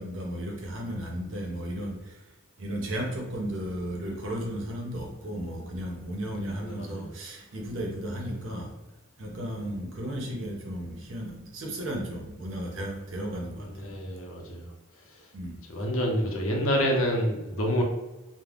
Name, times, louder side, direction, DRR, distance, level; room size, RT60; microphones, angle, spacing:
voice 1, 0.0-2.3 2.6-8.7 9.2-13.9 15.3-15.6, equal, 65° right, 0 dB, 0.6 m, -34 dB
voice 2, 6.6-7.1 13.6-14.7 15.7-17.8, equal, 85° left, 0 dB, 0.6 m, -28 dB
2.4 x 2.1 x 3.4 m, 1.1 s
head